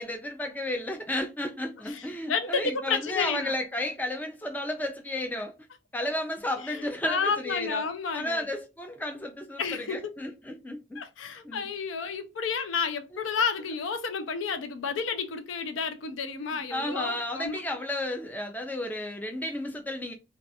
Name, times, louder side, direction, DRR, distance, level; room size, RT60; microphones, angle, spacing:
voice 1, 0.0-5.5 5.9-7.9 8.1-11.0 11.4-11.7 16.4-20.1, left 1 dB, 10° left, 0.3 m, -33 dB
voice 2, 1.9-3.5 6.6-8.5 9.6-10.2 11.0-17.8, left 5 dB, 85° left, 0.5 m, -31 dB
2.3 x 2.3 x 2.6 m
head